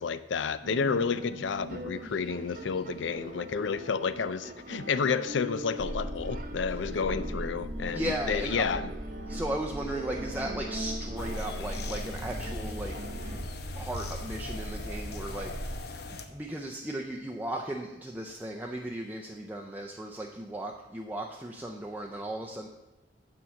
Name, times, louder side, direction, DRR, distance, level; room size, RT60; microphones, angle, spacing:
voice 1, 0.0-8.9, left 5 dB, 80° left, 14 dB, 0.5 m, -30 dB
sound 1, 0.6-13.4, right 1 dB, 50° right, 0.8 m, -42 dB
sound 2, 5.8-15.8, right 1 dB, 70° right, 1.1 m, -39 dB
voice 2, 7.9-8.7 9.3-13.0 13.2-13.4 13.7-16.0 16.3-22.7, right 1 dB, 10° right, 0 dB, 0.5 m, -36 dB
sound 3, 11.2-16.2, left 3 dB, 60° left, 0.8 m, -40 dB
8.7 x 4.6 x 6.8 m, 1.0 s
head